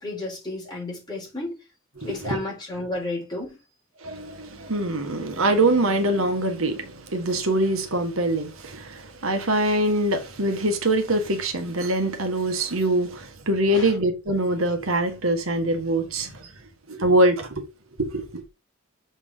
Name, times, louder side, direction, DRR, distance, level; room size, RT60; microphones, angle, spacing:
voice 1, 0.0-1.6 2.0-3.6 13.7-14.0, left 2 dB, 20° left, 4.1 m, -32 dB
voice 2, 2.0-2.4 4.0-16.5 16.9-17.6 18.0-18.3, right 1 dB, 80° right, 1.6 m, -24 dB
6.7 x 4.5 x 5.5 m
head